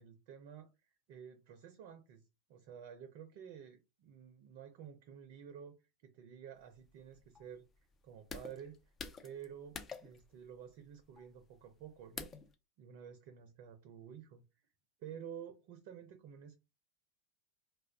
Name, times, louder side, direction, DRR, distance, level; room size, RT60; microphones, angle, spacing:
voice 1, 0.0-2.2 2.5-5.8 6.0-7.7 8.0-8.9 9.2-12.3 12.8-14.4 15.0-16.6, right 8 dB, 55° right, 0.5 m, -51 dB
sound 1, 6.6-12.5, left 5 dB, 30° left, 0.5 m, -50 dB
2.3 x 2.2 x 3.4 m
figure-of-eight pair, 85°, 0 cm